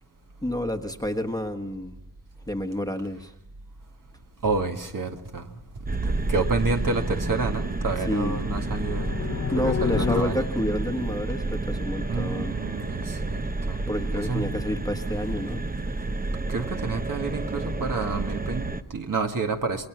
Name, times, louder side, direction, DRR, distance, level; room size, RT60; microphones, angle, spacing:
voice 1, 0.4-2.0 2.5-3.3 8.1-8.4 9.5-12.5 13.9-15.6, left 1 dB, 10° left, 1.3 m, -29 dB
voice 2, 4.4-5.5 5.9-9.1 9.5-10.4 12.1-13.9 14.3-14.5 16.5-19.9, right 4 dB, 55° right, 1.8 m, -29 dB
sound 1, 4.4-4.5 4.7-4.8 5.1-5.3 5.7-6.0 6.4-6.6 7.1-7.2 7.4-7.5 7.7-8.0 8.4-8.6 9.0-9.3, right 4 dB, 90° right, 2.9 m, -40 dB
sound 2, 5.6-10.8, left 6 dB, 40° left, 1.0 m, -32 dB
sound 3, 5.8-18.8, right 2 dB, 20° right, 0.9 m, -30 dB
27.5 x 21.5 x 6.1 m
wide cardioid pair, 135°, 39 cm